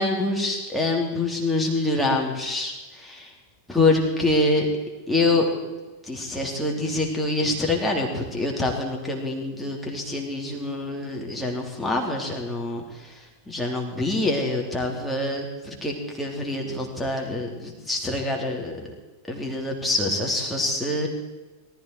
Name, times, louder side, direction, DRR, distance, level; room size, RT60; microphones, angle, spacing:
voice 1, 0.0-3.3 3.7-4.7 5.1-5.5 6.0-13.1 13.5-18.8 19.3-21.1, left 2 dB, 5° left, -1 dB, 3.3 m, -25 dB
18.0 x 14.5 x 4.8 m, 1.2 s
figure-of-eight pair, 90°, 0 cm